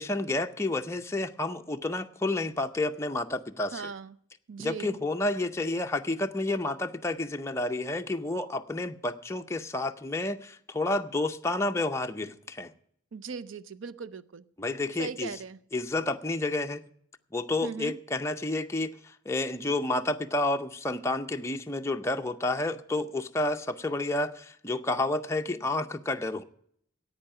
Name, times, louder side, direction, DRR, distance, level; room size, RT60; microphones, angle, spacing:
voice 1, 0.0-3.9 4.6-12.7 14.6-15.3 15.7-16.8 17.3-26.4, left 2 dB, 15° left, 0.5 m, -30 dB
voice 2, 3.7-4.1 4.5-5.0 13.1-14.4 15.0-15.6 17.6-18.0, right 5 dB, 70° right, 0.5 m, -39 dB
10.5 x 8.7 x 8.8 m
head